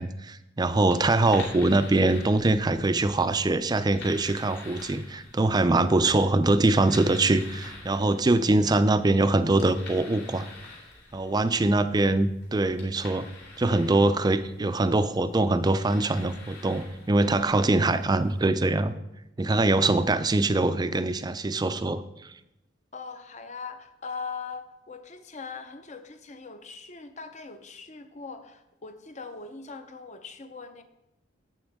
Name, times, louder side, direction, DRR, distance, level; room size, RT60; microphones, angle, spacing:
voice 1, 0.0-10.4 11.1-13.3 13.6-18.9 19.4-22.0, right 2 dB, 20° right, 12 dB, 0.4 m, -23 dB
sound 1, 0.6-18.4, left 3 dB, 60° left, 2.9 m, -48 dB
voice 2, 22.9-30.8, left 5 dB, 40° left, 8 dB, 0.8 m, -41 dB
11.5 x 7.9 x 3.6 m, 0.90 s
head